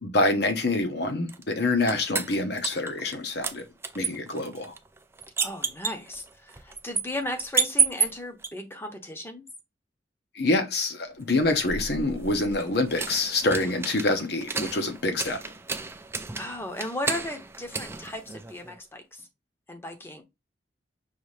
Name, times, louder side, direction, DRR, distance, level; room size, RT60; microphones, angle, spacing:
voice 1, 0.0-3.6 3.9-4.7 10.3-15.4, left 2 dB, 60° left, 1.0 m, -26 dB
sound 1, 1.3-3.2 3.4-8.5 11.3-18.8, right 5 dB, 15° right, 0.4 m, -31 dB
voice 2, 5.4-9.4 16.3-19.3 19.7-20.2, left 1 dB, 15° left, 0.8 m, -36 dB
5.6 x 2.7 x 3.2 m
head